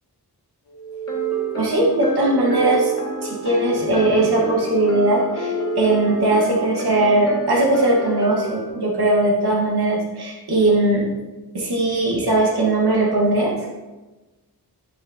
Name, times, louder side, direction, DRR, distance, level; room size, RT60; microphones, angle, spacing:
sound 1, 0.7-1.9 2.2-3.4 3.7-4.9 5.3-6.4, right 12 dB, 85° left, 1.1 m, -29 dB
sound 2, 1.1-8.7, equal, 40° left, 1.9 m, -29 dB
voice 1, 1.6-2.9 3.2-11.1 11.5-13.5, right 2 dB, 70° right, -3 dB, 1.6 m, -19 dB
9.3 x 5.9 x 2.8 m, 1.1 s
wide cardioid pair, 80°, 40 cm